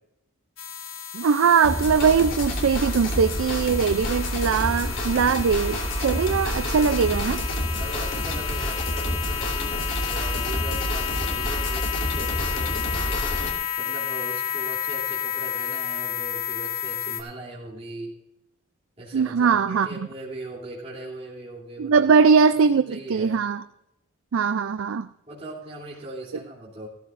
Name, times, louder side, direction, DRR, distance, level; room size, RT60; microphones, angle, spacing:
sound 1, 0.6-17.2, left 9 dB, 90° left, 1.6 m, -31 dB
voice 1, 1.1-7.4 19.1-20.1 21.8-23.6 24.3-25.1, right 6 dB, 80° right, 11 dB, 0.4 m, -21 dB
sound 2, 1.6-13.5, left 1 dB, 65° left, 3.3 m, -29 dB
voice 2, 7.8-13.2 13.8-18.2 19.0-22.1 22.6-23.4 25.3-26.9, right 1 dB, 30° right, -6 dB, 3.0 m, -39 dB
15.5 x 14.0 x 2.5 m, 0.86 s
head